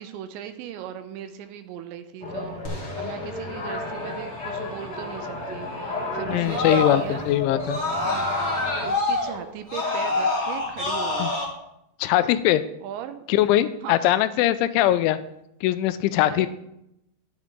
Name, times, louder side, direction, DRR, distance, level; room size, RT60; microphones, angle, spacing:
voice 1, 0.0-7.3 7.9-8.3 8.8-11.4 12.8-13.3 13.8-14.2 16.3-16.5, right 10 dB, 85° right, 9 dB, 2.9 m, -38 dB
sound 1, 2.2-8.9, left 2 dB, 40° left, 1.4 m, -33 dB
Screaming, 2.6-7.3 7.6-11.4, left 2 dB, 25° left, 1.6 m, -28 dB
voice 2, 6.3-7.8 11.2-11.3 12.0-12.6 13.3-15.2 15.6-16.5, left 13 dB, 90° left, 13 dB, 3.0 m, -21 dB
12.0 x 10.5 x 3.7 m, 0.81 s
omnidirectional pair, 5.4 m